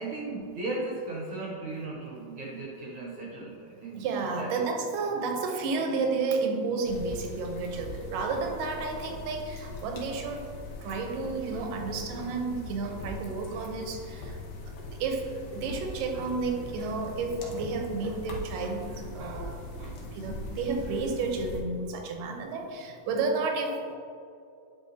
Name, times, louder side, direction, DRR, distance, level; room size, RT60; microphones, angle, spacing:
voice 1, 0.0-4.0 4.4-4.6 5.2-5.3, right 2 dB, 60° right, -4 dB, 1.4 m, -36 dB
voice 2, 4.0-10.5 10.8-14.3 15.0-15.2 15.5-18.8 19.1-23.8, right 4 dB, 90° right, 3 dB, 2.5 m, -31 dB
sound 1, 6.8-21.6, left 2 dB, 90° left, 2.7 m, -41 dB
sound 2, 9.6-10.1 10.6-11.0 12.5-12.6 15.2-15.8 16.0-16.4 17.2-18.2 18.8-20.3 20.7-21.2 21.6-21.7, left 2 dB, 65° left, 2.2 m, -53 dB
9.8 x 5.8 x 2.7 m, 2.5 s
omnidirectional pair, 3.8 m